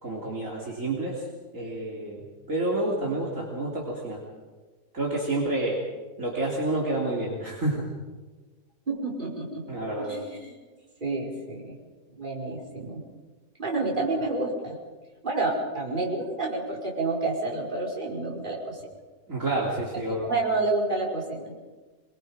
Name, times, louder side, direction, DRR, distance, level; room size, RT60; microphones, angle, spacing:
voice 1, 0.0-1.2 1.5-2.2 2.5-4.2 4.9-5.8 6.2-7.9 9.7-10.2 19.3-20.3, right 2 dB, 50° right, -4 dB, 3.7 m, -29 dB
voice 2, 8.9-9.6 10.0-10.5 11.0-11.8 12.2-13.0 13.6-14.8 15.2-18.8 20.3-21.5, right 3 dB, 30° right, -3 dB, 5.2 m, -29 dB
26.0 x 23.0 x 5.1 m, 1.3 s
omnidirectional pair, 1.7 m